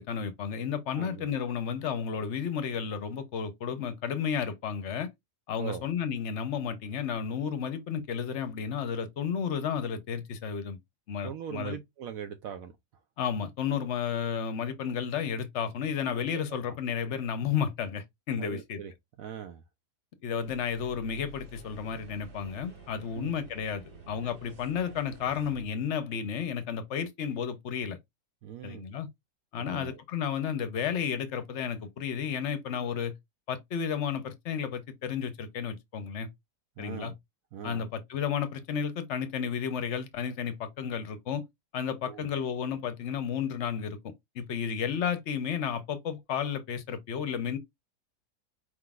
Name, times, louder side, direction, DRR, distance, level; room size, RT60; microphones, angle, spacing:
voice 1, 0.0-5.1 5.5-10.8 11.1-11.8 13.2-18.8 20.2-28.0 28.6-29.1 29.5-33.1 33.5-36.3 36.8-37.1 37.6-41.4 41.7-44.0 44.3-47.6, left 7 dB, 55° left, 0.8 m, -32 dB
voice 2, 0.9-1.3 5.6-5.8 11.2-12.7 16.3-16.4 16.7-16.8 18.4-18.9 19.2-19.6 23.1-23.3 28.4-28.9 29.6-30.0 36.8-37.1 37.5-37.8 42.1-42.3, right 8 dB, 70° right, 0.9 m, -40 dB
sound 1, 20.4-25.6, right 2 dB, 90° right, 1.9 m, -50 dB
4.7 x 3.7 x 2.3 m
omnidirectional pair, 1.7 m